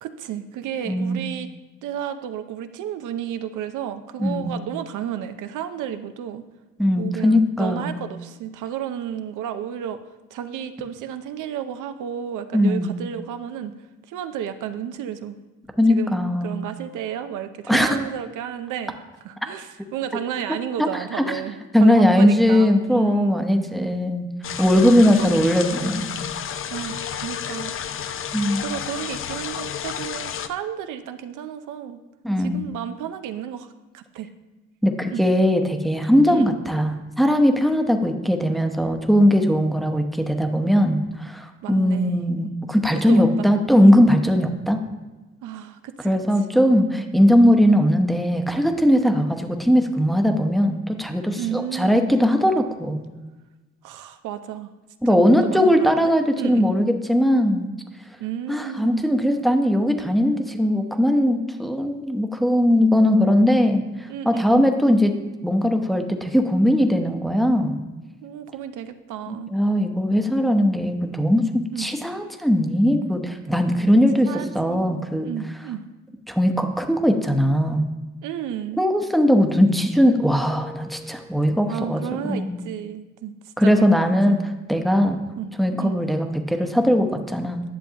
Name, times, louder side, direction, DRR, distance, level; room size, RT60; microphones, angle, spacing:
voice 1, 0.0-1.5 1.8-6.4 7.0-10.0 10.3-13.7 14.1-15.4 15.9-18.9 19.2-23.4 25.1-25.3 26.7-27.7 28.1-28.3 28.6-32.0 32.4-34.3 35.1-35.2 36.3-36.5 41.6-42.3 43.1-43.5 45.4-46.1 51.4-52.0 53.8-54.7 55.1-56.7 58.2-59.0 64.1-64.6 68.2-69.5 71.7-71.9 74.3-74.9 75.2-75.8 78.2-78.8 81.7-83.3 83.6-84.4 85.4-85.5 85.8-86.0, right 9 dB, 85° right, 10 dB, 0.6 m, -32 dB
voice 2, 0.9-1.2 4.2-4.5 6.8-7.9 12.5-12.9 15.8-16.6 17.7-18.0 20.8-21.4 21.7-24.3 24.6-26.1 28.3-28.6 32.2-32.7 34.8-44.8 46.0-53.1 55.0-57.7 58.5-65.2 65.4-67.8 69.3-75.3 76.3-77.9 78.8-82.6 83.6-84.4 84.7-85.2 85.6-87.6, equal, ahead, 5 dB, 0.8 m, -19 dB
sound 1, 24.4-30.5, left 8 dB, 45° left, 0.5 m, -31 dB
Keyboard (musical), 80.4-82.4, right 2 dB, 50° right, 1.7 m, -45 dB
10.5 x 6.9 x 2.9 m, 1.2 s
cardioid pair, 90°, 30 cm